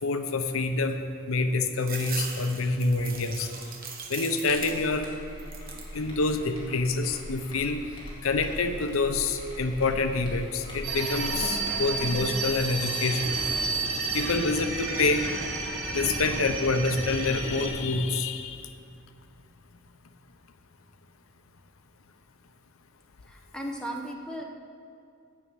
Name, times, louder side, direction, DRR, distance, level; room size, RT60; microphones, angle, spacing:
voice 1, 0.0-3.5 4.1-5.1 5.9-7.8 8.2-13.4 14.1-15.3 15.9-18.7, left 3 dB, 80° left, 8 dB, 0.7 m, -27 dB
sound 1, 1.8-5.1 5.4-6.0 6.5-7.2, right 5 dB, 45° right, 1.1 m, -40 dB
sound 2, 4.4-12.3, equal, 20° left, 2.0 m, -41 dB
sound 3, 10.8-17.7, right 3 dB, 75° right, 2.5 m, -31 dB
voice 2, 23.3-24.4, right 1 dB, 5° left, 0 dB, 0.9 m, -36 dB
9.7 x 6.3 x 7.7 m, 2.4 s
head